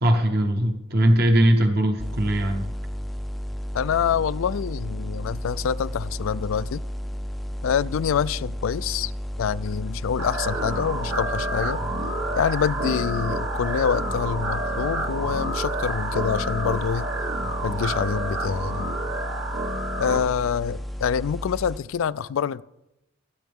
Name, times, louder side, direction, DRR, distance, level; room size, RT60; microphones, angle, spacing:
voice 1, 0.0-2.6, right 1 dB, 45° right, 1.0 m, -20 dB
sound 1, 2.0-21.8, equal, ahead, 0.4 m, -33 dB
voice 2, 3.7-6.8 7.6-9.1 9.4-11.8 12.4-17.1 17.6-18.9 20.0-22.6, left 7 dB, 75° left, 0.3 m, -26 dB
sound 2, 10.2-20.2, right 2 dB, 75° right, 1.8 m, -29 dB
18.5 x 9.4 x 3.6 m
head